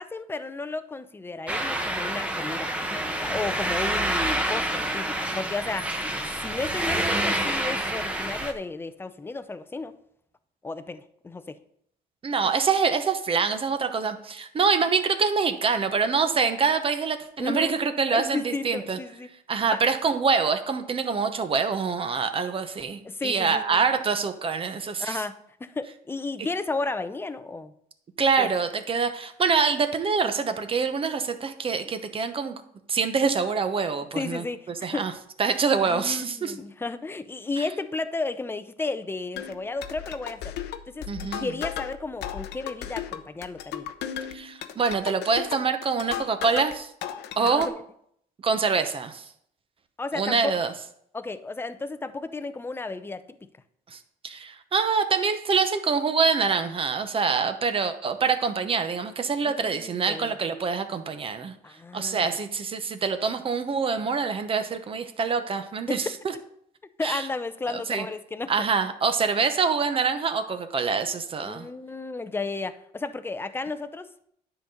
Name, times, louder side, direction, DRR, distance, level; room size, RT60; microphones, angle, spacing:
voice 1, 0.0-6.0 6.4-9.9 10.6-11.6 17.4-17.7 18.1-19.3 19.7-19.8 23.0-23.8 25.0-27.7 28.4-28.5 34.1-35.1 35.8-40.5 40.9-43.9 47.4-47.7 50.0-50.5 51.1-53.5 59.4-60.3 61.6-62.3 65.9-66.1 67.0-68.5 71.4-74.1, left 3 dB, 15° left, 12 dB, 0.5 m, -33 dB
sound 1, 1.5-8.5, right 1 dB, 5° right, 0.9 m, -28 dB
voice 2, 12.2-19.0 19.5-25.2 28.2-32.6 32.9-34.4 34.8-35.1 35.4-36.5 37.6-37.7 41.1-41.5 44.3-46.9 47.4-47.7 48.4-49.3 50.1-50.7 53.9-61.5 61.9-66.3 67.0-67.3 67.7-68.1 68.5-71.7, right 5 dB, 30° right, 9 dB, 0.9 m, -25 dB
sound 2, 39.3-46.8 47.0-47.7, left 10 dB, 80° left, 0.7 m, -35 dB
10.0 x 3.9 x 6.5 m, 0.70 s
cardioid pair, 110°, 17 cm